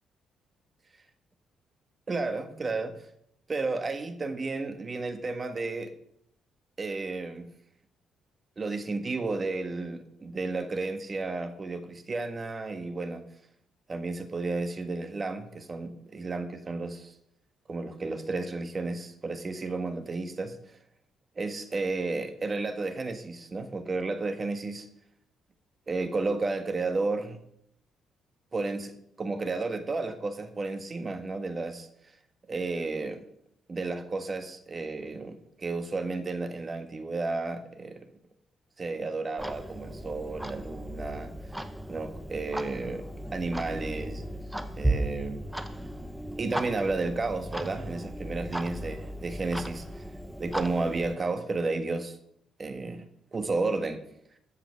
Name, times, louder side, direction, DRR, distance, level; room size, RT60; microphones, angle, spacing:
voice 1, 2.1-2.9 3.5-5.9 6.8-7.5 8.6-13.2 13.9-17.1 17.7-20.6 21.3-24.9 25.9-27.4 28.5-31.9 32.5-33.2 33.7-38.1 38.8-41.6 41.9-43.0 43.3-45.4 46.4-50.0 50.4-52.2 52.6-54.0, right 3 dB, 35° right, 8 dB, 1.5 m, -32 dB
Clock, 39.4-51.1, right 1 dB, ahead, 0.9 m, -36 dB
13.5 x 5.9 x 8.2 m, 0.72 s
cardioid pair, 90°, 0 cm